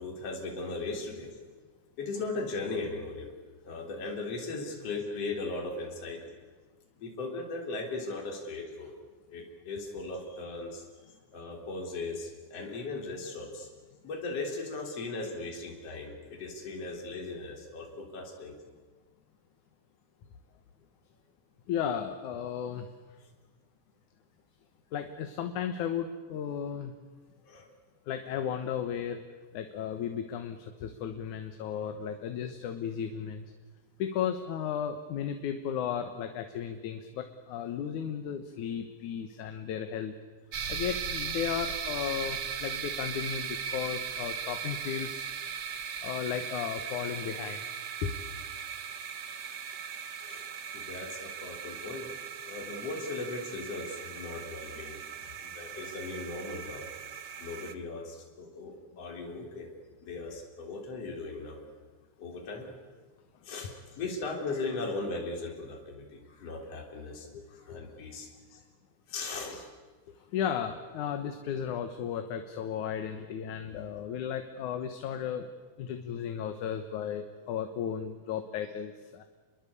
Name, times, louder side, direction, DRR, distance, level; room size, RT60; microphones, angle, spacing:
voice 1, 0.0-1.3 2.0-3.4 3.6-6.3 7.0-8.9 9.3-10.8 11.3-13.7 14.0-18.6 27.4-27.7 47.0-47.2 50.2-50.5 50.7-52.1 52.5-55.0 55.4-56.9 57.4-59.7 60.0-61.6 62.2-62.8 63.4-68.3 69.1-69.6 70.2-70.3, left 3 dB, 50° left, 1 dB, 4.6 m, -38 dB
voice 2, 13.3-13.7 14.8-14.9 21.7-22.9 24.9-26.9 28.1-29.2 29.5-33.5 34.0-40.1 40.7-45.3 46.0-47.6 48.0-48.1 51.6-51.8 63.9-64.0 64.6-64.9 67.3-67.9 68.5-68.6 69.5-69.6 70.3-75.5 75.8-79.2, left 8 dB, 75° left, 7 dB, 2.7 m, -35 dB
sound 1, 40.5-57.7, right 7 dB, 65° right, 1.0 m, -38 dB
28.5 x 22.0 x 8.5 m, 1.3 s
omnidirectional pair, 3.5 m